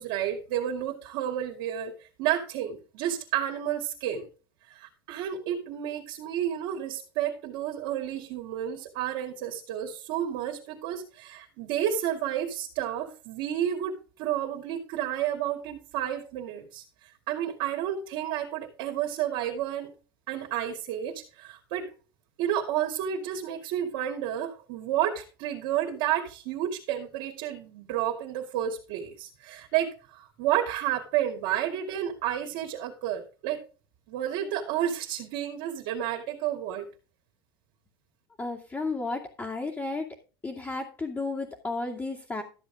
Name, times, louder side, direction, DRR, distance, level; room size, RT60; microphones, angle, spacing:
voice 1, 0.0-4.2 4.7-19.9 20.3-21.9 22.4-33.6 34.1-36.9, right 11 dB, 65° right, 2 dB, 2.6 m, -31 dB
voice 2, 38.4-40.1 40.4-42.4, left 3 dB, 20° left, -3 dB, 2.5 m, -33 dB
13.5 x 7.2 x 3.7 m, 0.35 s
hypercardioid pair, 95°, 12 cm